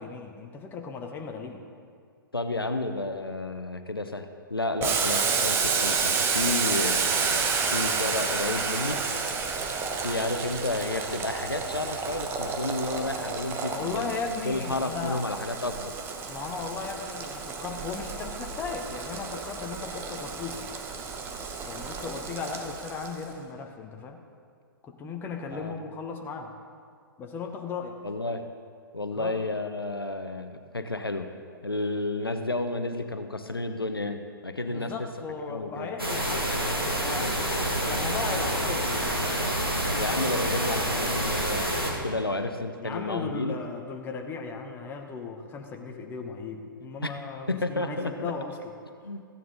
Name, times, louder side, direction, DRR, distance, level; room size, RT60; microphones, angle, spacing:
voice 1, 0.0-1.6 13.7-15.2 16.3-20.6 21.6-24.2 24.8-26.6 27.2-28.0 29.1-29.4 34.7-37.5 37.8-39.2 42.8-48.7, left 4 dB, 15° left, 3 dB, 1.0 m, -36 dB
voice 2, 2.3-7.4 7.7-9.0 10.0-15.9 25.5-25.7 28.0-28.4 28.9-31.3 31.6-35.1 35.5-35.9 39.9-43.6 47.0-47.1 47.5-48.3 49.0-49.2, left 2 dB, 90° left, 8 dB, 0.8 m, -31 dB
Boiling, 4.8-23.2, right 5 dB, 20° right, 0.9 m, -30 dB
sound 1, 36.0-41.9, right 1 dB, 90° right, 2.1 m, -28 dB
15.0 x 9.2 x 4.0 m, 2.1 s
figure-of-eight pair, 120°, 12 cm